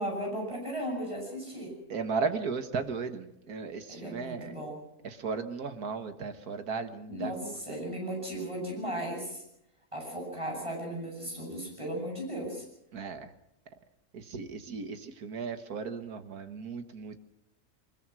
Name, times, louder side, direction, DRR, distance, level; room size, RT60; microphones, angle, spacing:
voice 1, 0.0-1.7 3.9-4.8 7.1-9.4 9.9-12.6, right 1 dB, 20° right, 0 dB, 8.1 m, -36 dB
voice 2, 1.9-4.6 5.0-7.6 12.9-13.3 14.1-17.2, right 5 dB, 75° right, 9 dB, 2.0 m, -35 dB
23.0 x 21.0 x 6.2 m, 0.80 s
omnidirectional pair, 1.6 m